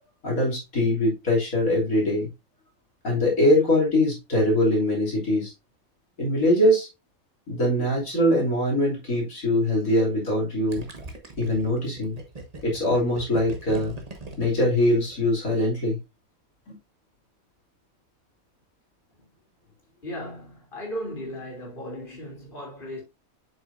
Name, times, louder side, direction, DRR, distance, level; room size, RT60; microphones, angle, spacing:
voice 1, 0.2-2.3 3.0-5.5 6.2-6.9 7.5-10.9 11.4-12.2 12.6-13.9 14.4-16.0 16.7-16.8, left 1 dB, 85° left, 3.3 m, -22 dB
Gurgling, 10.7-15.4, right 2 dB, 30° right, 1.2 m, -40 dB
voice 2, 20.0-23.0, equal, 40° left, 3.2 m, -36 dB
7.8 x 6.4 x 2.6 m
omnidirectional pair, 1.4 m